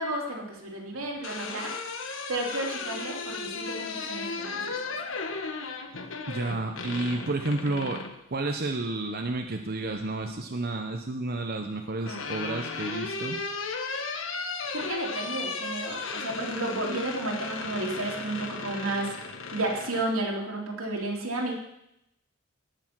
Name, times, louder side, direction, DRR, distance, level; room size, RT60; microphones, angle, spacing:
voice 1, 0.0-1.7 2.3-4.8 14.7-19.2 19.5-21.5, right 2 dB, 85° right, -1 dB, 3.2 m, -32 dB
sound 1, 0.9-8.2 9.7-10.3 11.6-20.1, left 4 dB, 65° left, 1.4 m, -35 dB
voice 2, 6.3-8.0 8.3-13.4, right 2 dB, 45° right, 4 dB, 0.8 m, -31 dB
18.0 x 7.0 x 6.1 m, 0.84 s
head